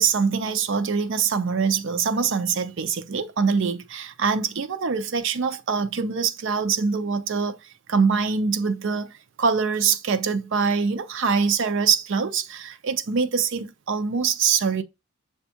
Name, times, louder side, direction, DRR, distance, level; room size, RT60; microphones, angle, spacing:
voice 1, 0.0-7.6 7.9-14.8, right 5 dB, 60° right, 0.5 m, -24 dB
6.9 x 2.3 x 2.8 m
head